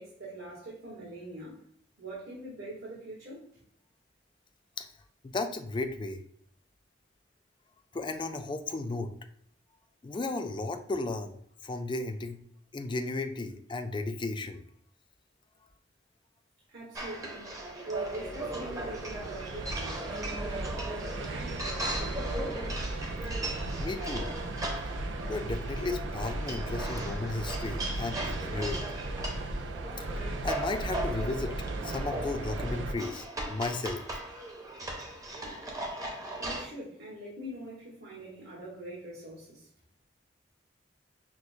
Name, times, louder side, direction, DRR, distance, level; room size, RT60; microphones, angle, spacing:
voice 1, 0.0-1.6 2.0-3.5 16.7-17.5 17.8-20.4 20.9-22.6 36.4-39.7, right 2 dB, 65° right, -6 dB, 1.2 m, -43 dB
voice 2, 5.2-6.2 7.9-9.1 10.0-11.4 11.6-12.4 12.7-14.6 23.8-24.3 25.3-28.9 30.0-30.1 30.4-34.0, left 3 dB, 25° left, 6 dB, 0.4 m, -34 dB
sound 1, 17.0-36.7, right 1 dB, 20° right, 0.6 m, -38 dB
sound 2, 17.9-32.9, right 2 dB, 85° right, 0.4 m, -36 dB
6.0 x 2.1 x 2.5 m, 0.65 s
head